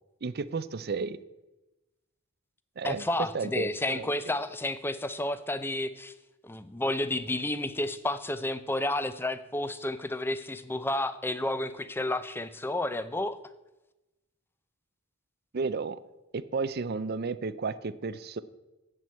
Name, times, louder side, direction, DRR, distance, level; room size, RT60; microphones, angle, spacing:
voice 1, 0.2-1.2 2.8-3.0 3.3-4.1 15.5-16.0 16.3-18.4, right 4 dB, 45° right, 14 dB, 0.5 m, -32 dB
voice 2, 2.8-6.1 6.4-13.4, left 1 dB, 10° left, 13 dB, 0.5 m, -31 dB
8.0 x 7.5 x 8.3 m, 1.0 s
head